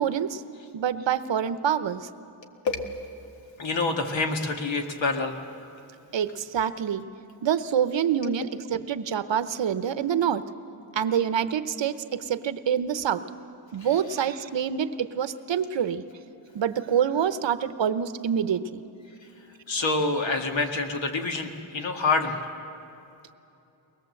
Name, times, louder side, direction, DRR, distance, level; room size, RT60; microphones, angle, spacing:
voice 1, 0.0-0.4 0.7-2.1 6.1-7.1 7.4-10.5 10.9-13.2 13.7-16.0 16.5-18.8, right 8 dB, 65° right, 12 dB, 0.9 m, -26 dB
voice 2, 3.6-5.4 8.2-8.3 13.8-14.1 19.7-22.4, left 3 dB, 65° left, 4 dB, 1.9 m, -27 dB
22.5 x 20.0 x 7.8 m, 2.8 s
wide cardioid pair, 125°, 49 cm